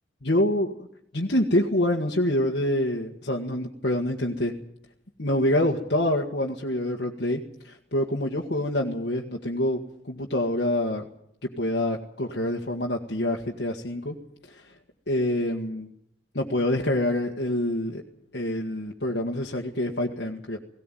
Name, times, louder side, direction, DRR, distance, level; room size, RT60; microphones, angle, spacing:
voice 1, 0.2-0.8 1.1-4.5 5.2-11.0 11.4-14.2 14.5-14.7 15.1-15.9 16.3-18.0 18.3-20.6, left 1 dB, 65° left, 0 dB, 1.8 m, -26 dB
18.5 x 18.0 x 9.1 m, 0.70 s
head